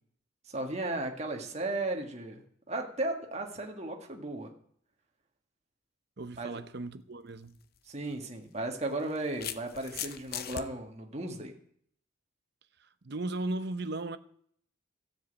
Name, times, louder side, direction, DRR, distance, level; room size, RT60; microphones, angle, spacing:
voice 1, 0.5-2.4 2.7-4.5 6.4-6.5 7.9-11.5, right 2 dB, 35° right, 1.8 m, -35 dB
voice 2, 6.2-7.6 12.8-14.2, right 2 dB, 55° right, 0.8 m, -36 dB
sound 1, 7.5-7.6 8.7-10.6, left 9 dB, 50° left, 0.7 m, -39 dB
13.5 x 7.5 x 8.2 m
head